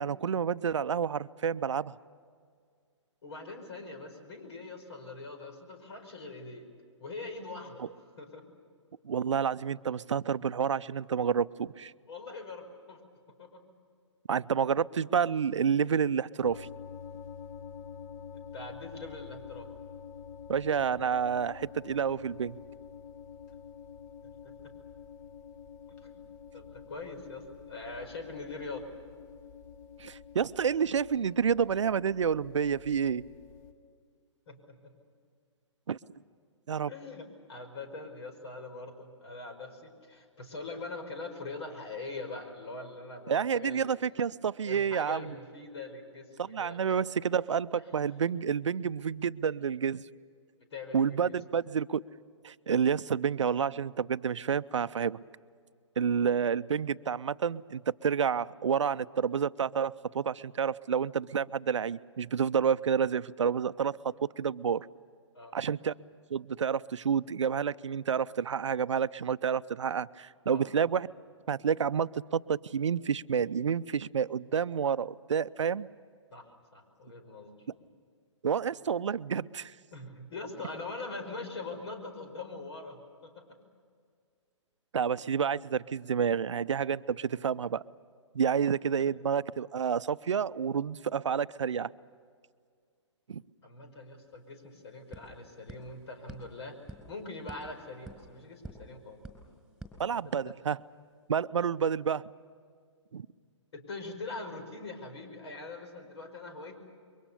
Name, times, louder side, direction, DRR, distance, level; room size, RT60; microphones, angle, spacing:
voice 1, 0.0-1.9 7.8-7.9 9.0-11.9 14.3-16.7 20.5-22.6 30.0-33.2 35.9-36.0 36.7-36.9 43.3-45.3 46.4-50.0 50.9-52.0 52.4-55.2 56.0-64.9 65.5-65.9 66.3-71.1 71.5-75.9 78.4-79.7 84.9-87.8 88.3-91.9 93.3-93.4 100.0-100.8 101.3-102.3 103.1-103.3, right 7 dB, 70° right, 16 dB, 0.6 m, -29 dB
voice 2, 3.2-6.7 7.0-7.8 8.2-8.5 12.1-13.0 13.4-13.6 18.5-19.7 24.4-24.5 25.9-26.2 26.5-28.9 34.5-34.9 36.9-43.8 44.7-47.0 50.7-51.4 65.3-65.6 70.5-70.9 76.3-77.5 79.9-83.6 89.0-89.1 93.6-96.8 97.1-99.2 100.2-100.5 103.7-106.8, left 3 dB, 60° left, 6 dB, 5.2 m, -43 dB
sound 1, 16.4-33.7, left 7 dB, 35° left, 1.9 m, -48 dB
sound 2, 94.0-94.1 94.3-100.7, right 1 dB, ahead, 4.5 m, -51 dB
28.5 x 23.0 x 6.9 m, 2.1 s
figure-of-eight pair, 125°, 16 cm